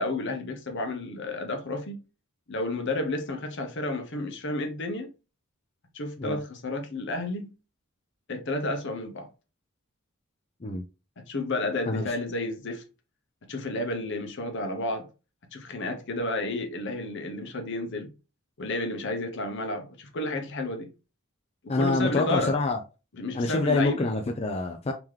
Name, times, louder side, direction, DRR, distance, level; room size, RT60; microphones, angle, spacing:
voice 1, 0.0-2.0 2.5-5.1 5.9-7.5 8.3-9.3 11.2-12.8 13.5-15.1 15.5-18.1 18.6-20.9 21.6-22.6 23.1-24.1, left 2 dB, 60° left, 0.9 m, -31 dB
voice 2, 21.7-22.8 23.3-24.9, left 2 dB, 30° left, 0.5 m, -26 dB
3.8 x 2.9 x 3.1 m
head